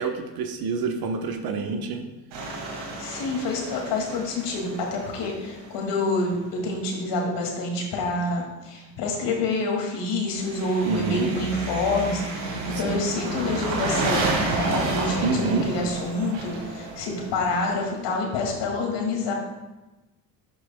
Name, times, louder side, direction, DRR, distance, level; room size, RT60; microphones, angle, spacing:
voice 1, 0.0-2.0 10.8-11.3 12.7-13.0 15.2-15.7, right 4 dB, 50° right, 5 dB, 1.0 m, -27 dB
sound 1, 2.3-6.2 10.3-18.0, right 2 dB, 80° right, 2.1 m, -31 dB
voice 2, 2.7-19.3, left 2 dB, 60° left, 0 dB, 2.2 m, -27 dB
11.5 x 6.2 x 2.2 m, 1.1 s
hypercardioid pair, 75°, 48 cm